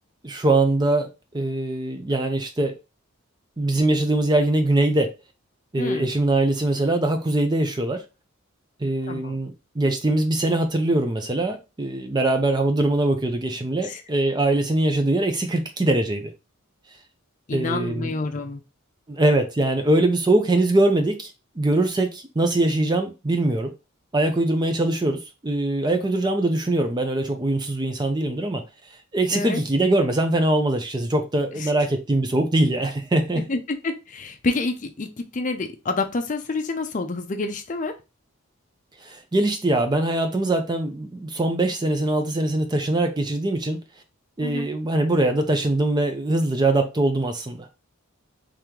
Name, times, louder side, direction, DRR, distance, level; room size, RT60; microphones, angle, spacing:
voice 1, 0.2-1.1 1.3-2.7 3.6-5.1 5.7-8.0 8.8-16.3 17.5-18.1 19.1-21.3 21.6-23.7 24.1-28.6 29.1-33.5 39.0-43.8 44.4-47.7, right 2 dB, 20° right, 0.4 m, -22 dB
voice 2, 17.5-18.6 29.3-29.6 31.6-31.7 33.3-38.0 44.4-44.7, left 3 dB, 35° left, 0.5 m, -28 dB
3.4 x 3.1 x 3.7 m
head